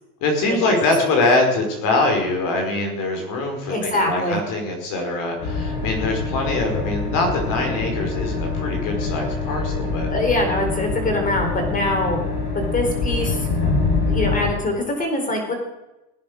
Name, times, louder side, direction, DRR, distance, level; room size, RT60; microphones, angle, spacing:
voice 1, 0.2-10.1, left 2 dB, 45° left, 3 dB, 5.2 m, -23 dB
voice 2, 3.7-4.4 10.1-12.2 12.5-13.5 14.1-15.6, left 2 dB, 15° left, 4 dB, 4.3 m, -23 dB
sound 1, 5.4-14.5, left 3 dB, 70° left, 7.5 m, -25 dB
17.5 x 9.7 x 6.5 m, 0.99 s
supercardioid pair, 130°, 46 cm